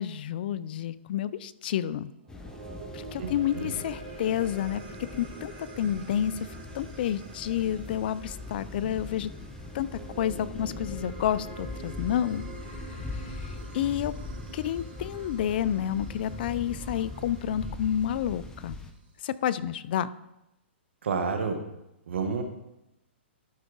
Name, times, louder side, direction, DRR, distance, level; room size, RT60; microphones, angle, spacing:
voice 1, 0.0-2.1 2.9-4.8 5.1-6.3 6.7-9.3 9.7-9.9 10.2-12.4 13.0-14.1 14.5-18.8 19.2-20.1, left 10 dB, 55° left, 17 dB, 0.4 m, -30 dB
sound 1, 2.2-18.7, right 4 dB, 60° right, 2.9 m, -46 dB
sound 2, 2.3-18.9, left 3 dB, 10° left, 0.7 m, -41 dB
voice 2, 3.2-3.7 21.0-21.6 22.1-22.4, right 5 dB, 75° right, 5 dB, 1.2 m, -30 dB
12.5 x 4.6 x 3.9 m, 0.90 s
hypercardioid pair, 135°, 6 cm